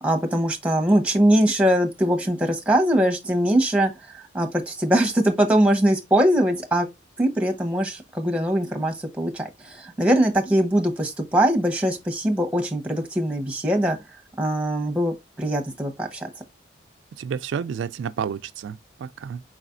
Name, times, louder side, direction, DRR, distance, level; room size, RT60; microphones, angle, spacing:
voice 1, 0.0-6.9 7.2-14.0 14.4-16.3, right 1 dB, 5° right, 0.8 m, -22 dB
voice 2, 17.1-19.4, right 7 dB, 80° right, 0.3 m, -30 dB
4.8 x 4.0 x 2.5 m
head